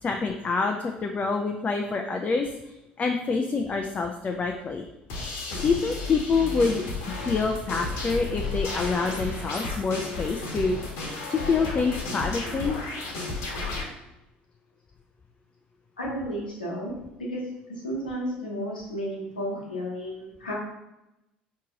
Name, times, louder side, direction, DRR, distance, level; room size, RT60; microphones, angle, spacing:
voice 1, 0.0-4.8 5.6-12.8, left 4 dB, 30° left, 3 dB, 0.4 m, -27 dB
sound 1, 5.1-13.8, left 3 dB, 60° left, 1.1 m, -33 dB
voice 2, 16.0-17.4 17.7-20.5, equal, 85° left, -4 dB, 1.1 m, -33 dB
4.6 x 3.0 x 3.7 m, 0.93 s
figure-of-eight pair, 60°, 5 cm